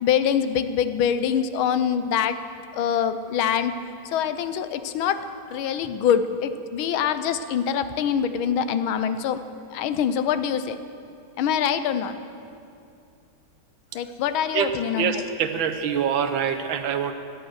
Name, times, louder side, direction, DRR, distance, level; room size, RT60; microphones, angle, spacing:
voice 1, 0.0-2.4 2.7-3.7 4.0-5.2 5.5-9.4 9.7-10.8 11.4-12.2 13.9-15.2, left 8 dB, 85° left, 11 dB, 1.6 m, -24 dB
voice 2, 15.0-17.1, right 8 dB, 75° right, 7 dB, 1.7 m, -25 dB
17.5 x 11.5 x 6.4 m, 2.5 s
omnidirectional pair, 2.2 m